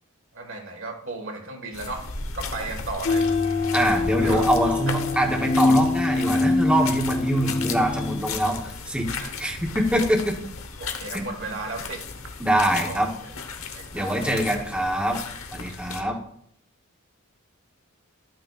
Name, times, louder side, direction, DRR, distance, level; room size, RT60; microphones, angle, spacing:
voice 1, 0.3-2.1 2.3-3.3 4.2-4.4 4.9-5.0 9.2-9.3 10.8-12.0 12.8-13.3 13.7-14.3 16.0-16.2, right 3 dB, 60° right, 3 dB, 1.6 m, -35 dB
sound 1, 1.7-16.0, left 4 dB, 70° left, 1.1 m, -36 dB
sound 2, 3.1-8.2, left 3 dB, 50° left, 0.8 m, -24 dB
voice 2, 3.7-10.3 11.1-11.4 12.4-13.1 13.9-15.2 15.5-16.2, right 1 dB, 5° right, 0 dB, 0.9 m, -24 dB
12.5 x 9.0 x 2.4 m, 0.69 s
head